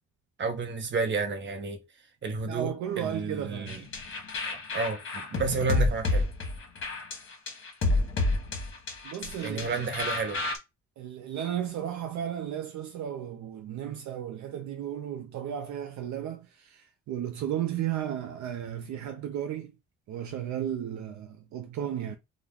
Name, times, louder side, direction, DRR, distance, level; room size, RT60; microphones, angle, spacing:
voice 1, 0.4-1.8 2.2-3.8 4.5-6.3 9.4-10.4, right 4 dB, 40° right, 0.8 m, -31 dB
voice 2, 2.5-3.8 9.0-9.8 11.0-19.7 20.1-22.2, right 10 dB, 70° right, 0.5 m, -34 dB
sound 1, 3.7-10.6, left 2 dB, 40° left, 0.9 m, -30 dB
2.3 x 2.1 x 3.3 m
cardioid pair, 90°, 30 cm